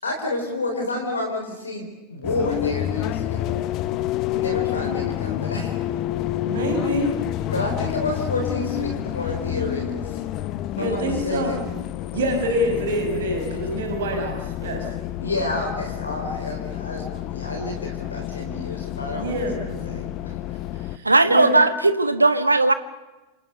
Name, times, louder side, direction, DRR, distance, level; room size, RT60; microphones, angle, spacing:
voice 1, 0.0-3.5 4.3-5.8 7.5-10.2 10.8-11.7 15.2-20.3, left 2 dB, 75° left, 3 dB, 4.1 m, -30 dB
sound 1, 2.2-21.0, left 13 dB, 40° left, 1.0 m, -29 dB
voice 2, 6.5-7.1 10.8-11.5 12.1-14.9 19.1-20.0 20.9-21.5, equal, 60° right, 4 dB, 5.8 m, -26 dB
voice 3, 21.0-22.7, right 2 dB, 80° right, 12 dB, 1.3 m, -17 dB
28.0 x 27.0 x 6.9 m, 1.1 s
figure-of-eight pair, 90°, 0 cm